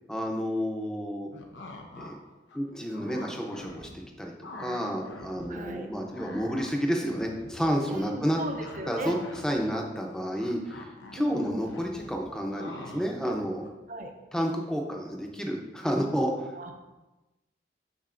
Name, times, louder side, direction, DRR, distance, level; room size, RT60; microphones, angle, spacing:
voice 1, 0.1-1.3 2.0-2.2 2.5-8.4 8.9-13.7 14.3-16.5, equal, 5° left, 0 dB, 0.6 m, -30 dB
sound 1, 1.3-2.1 2.5-4.1 4.4-5.5 5.8-13.7, left 2 dB, 90° left, 0.9 m, -45 dB
voice 2, 5.5-5.9 7.9-9.2 11.2-11.6 13.9-14.1 16.5-16.7, right 2 dB, 45° right, 4 dB, 0.5 m, -37 dB
11.5 x 4.0 x 2.5 m, 1.1 s
head